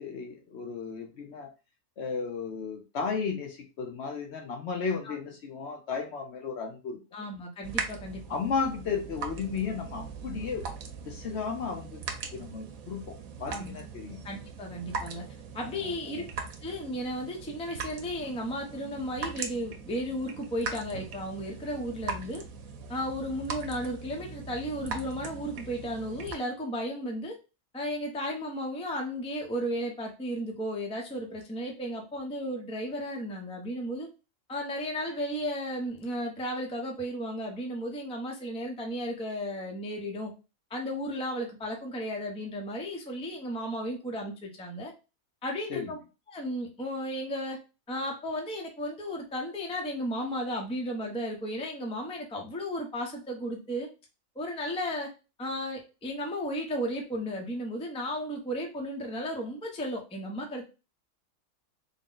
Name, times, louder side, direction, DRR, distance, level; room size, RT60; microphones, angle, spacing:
voice 1, 0.0-1.5 2.0-7.0 8.3-10.7 11.0-12.0 12.3-14.2 15.6-16.3 45.7-45.9, left 5 dB, 60° left, 3 dB, 0.8 m, -34 dB
voice 2, 7.1-8.2 13.5-13.8 14.2-15.2 15.5-16.2 16.6-22.4 22.9-27.3 27.7-34.1 34.5-40.3 40.7-44.9 45.4-46.0 46.3-47.6 47.9-53.9 54.3-55.1 55.4-60.6, equal, 5° left, 1 dB, 0.4 m, -34 dB
sound 1, 7.6-26.3, right 5 dB, 85° right, 1.1 m, -40 dB
3.7 x 2.1 x 3.8 m, 0.30 s
omnidirectional pair, 1.4 m